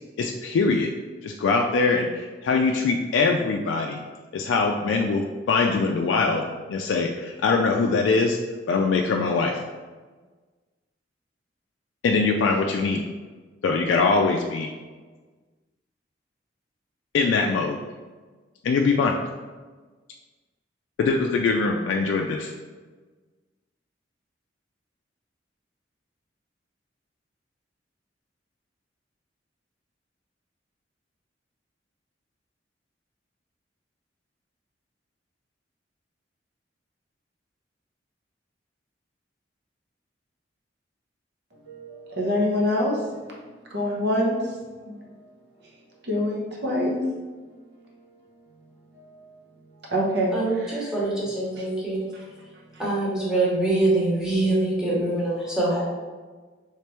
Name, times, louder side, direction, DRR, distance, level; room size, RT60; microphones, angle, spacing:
voice 1, 0.2-0.9 1.2-4.0 4.3-5.2 5.5-8.4 8.7-9.6 12.0-13.0 13.6-14.7 17.1-17.8 18.6-19.2 21.0-22.5, left 4 dB, 85° left, 1 dB, 0.3 m, -22 dB
voice 2, 41.6-43.0 43.7-44.5 44.9-45.0 46.0-47.0 48.9-49.3 49.9-50.9 51.6-51.7, left 1 dB, 65° right, -2 dB, 0.8 m, -26 dB
voice 3, 50.3-52.0 52.8-55.9, right 2 dB, 5° right, -7 dB, 1.0 m, -24 dB
3.3 x 3.2 x 3.0 m, 1.4 s
head